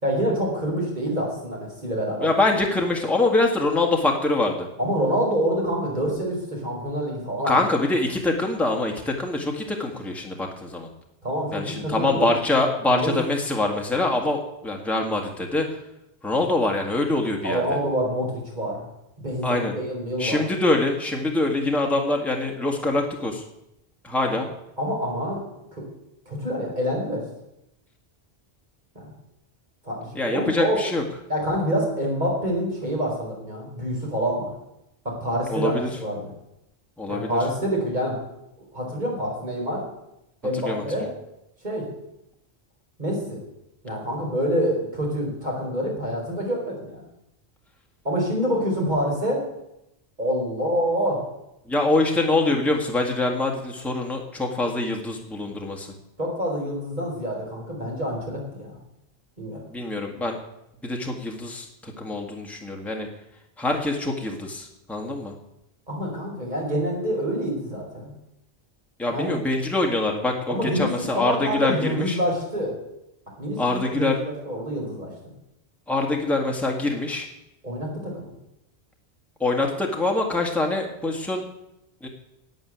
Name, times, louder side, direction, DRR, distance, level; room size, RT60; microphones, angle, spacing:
voice 1, 0.0-2.3 4.8-7.6 11.2-12.3 12.9-13.1 17.4-18.8 19.2-20.5 24.8-25.9 26.3-27.2 28.9-29.1 29.8-30.0 30.3-30.8 31.3-34.5 35.0-35.7 36.0-36.3 37.1-38.2 38.7-39.8 40.4-41.1 41.6-41.9 43.0-43.4 43.8-47.0 48.0-49.4 50.2-51.2 56.2-58.8 59.4-59.6 65.9-68.1 69.1-69.3 70.5-72.7 73.4-75.1 77.6-78.3, equal, 40° right, -2 dB, 5.0 m, -26 dB
voice 2, 2.2-4.7 7.4-10.9 11.5-15.8 16.2-17.8 19.4-19.7 20.2-23.4 24.0-24.5 30.1-31.0 35.5-35.9 37.0-37.3 40.5-40.8 51.7-55.9 59.7-60.4 60.8-63.1 63.6-65.3 69.0-72.2 73.6-74.2 75.9-77.3 79.4-81.4 82.0-82.1, left 2 dB, ahead, 1 dB, 1.9 m, -24 dB
12.5 x 8.1 x 9.4 m, 0.85 s
omnidirectional pair, 1.1 m